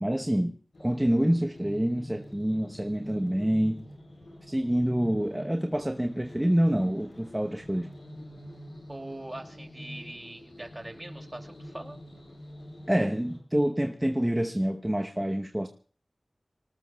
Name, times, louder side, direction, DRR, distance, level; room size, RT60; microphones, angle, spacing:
voice 1, 0.0-3.8 4.5-7.9 12.9-15.7, equal, 15° right, 3 dB, 0.9 m, -27 dB
sound 1, 0.7-13.4, equal, 80° left, 7.3 m, -46 dB
voice 2, 8.9-12.0, right 1 dB, 30° right, 3 dB, 2.7 m, -42 dB
25.0 x 19.0 x 2.3 m, 0.43 s
wide cardioid pair, 70°, 0 cm